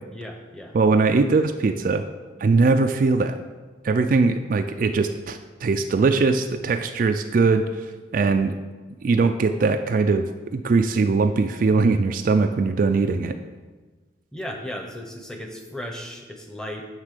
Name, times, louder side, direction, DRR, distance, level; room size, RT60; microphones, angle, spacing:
voice 1, 0.1-0.7 14.3-16.8, equal, 5° left, 2 dB, 0.8 m, -35 dB
voice 2, 0.7-2.1 2.4-3.4 3.8-7.9 8.1-8.5 9.0-13.3, right 4 dB, 45° right, 7 dB, 0.3 m, -21 dB
9.5 x 3.7 x 6.6 m, 1.3 s
head